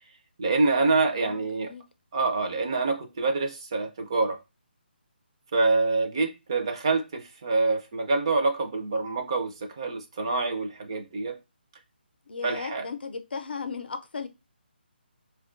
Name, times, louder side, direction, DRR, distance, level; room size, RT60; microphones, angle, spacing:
voice 1, 0.4-1.7 2.1-4.4 5.5-11.4 12.4-12.8, right 3 dB, 30° right, 0.4 m, -26 dB
voice 2, 1.1-1.8 12.3-14.3, left 5 dB, 65° left, 0.5 m, -36 dB
4.2 x 2.2 x 2.4 m
hypercardioid pair, 175°, 6 cm